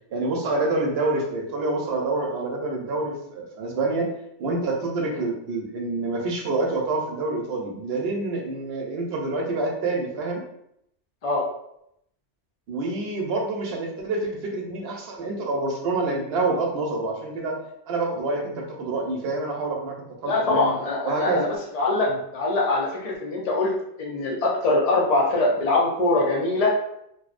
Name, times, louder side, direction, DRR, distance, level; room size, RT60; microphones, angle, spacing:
voice 1, 0.1-4.1 4.4-10.4 12.7-17.6 17.9-20.0 20.2-20.7 21.0-21.5 22.1-22.2, right 2 dB, 65° right, 0 dB, 0.7 m, -27 dB
voice 2, 20.3-21.5 21.7-23.7 24.0-26.7, left 2 dB, 55° left, -3 dB, 0.4 m, -23 dB
2.5 x 2.1 x 2.4 m, 0.76 s
omnidirectional pair, 1.2 m